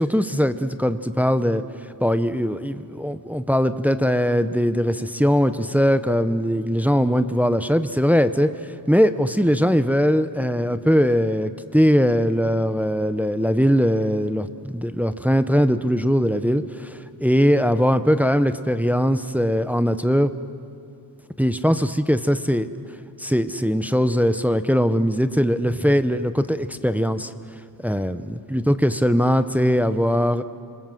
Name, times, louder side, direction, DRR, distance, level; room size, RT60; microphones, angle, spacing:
voice 1, 0.0-1.6 2.0-8.5 8.9-20.3 21.4-22.7 23.2-27.3 27.8-30.4, equal, 5° right, 11 dB, 0.7 m, -20 dB
27.0 x 20.5 x 7.7 m, 2.7 s
wide cardioid pair, 130°, 42 cm